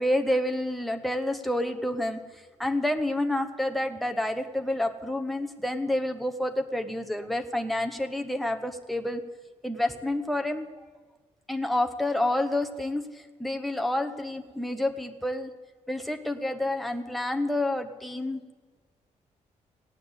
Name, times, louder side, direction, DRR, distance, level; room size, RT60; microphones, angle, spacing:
voice 1, 0.0-9.2 9.6-10.6 11.5-15.5 15.9-18.5, left 1 dB, ahead, 5 dB, 0.8 m, -29 dB
16.5 x 9.2 x 8.1 m, 1.4 s
wide cardioid pair, 175°, 13 cm